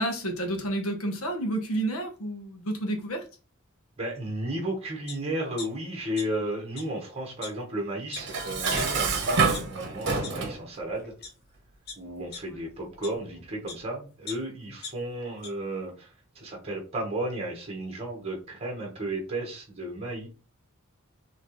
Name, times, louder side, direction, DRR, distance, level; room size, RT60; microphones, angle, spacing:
voice 1, 0.0-3.2, right 1 dB, 75° left, 5 dB, 1.0 m, -30 dB
voice 2, 4.0-11.1 12.0-20.3, right 1 dB, 30° right, 1 dB, 1.1 m, -34 dB
sound 1, 5.1-5.2 5.6-6.5 6.7-6.8 7.4-7.5 8.1-8.2 8.7-8.8 9.3-9.6 10.2-10.3 11.0-11.3 11.9-13.8 14.3-15.5 15.9-16.0, left 5 dB, 50° left, 0.7 m, -41 dB
Dishes pots and pans, 8.2-10.6, right 4 dB, 55° right, 1.0 m, -27 dB
4.2 x 2.9 x 3.1 m, 0.34 s
head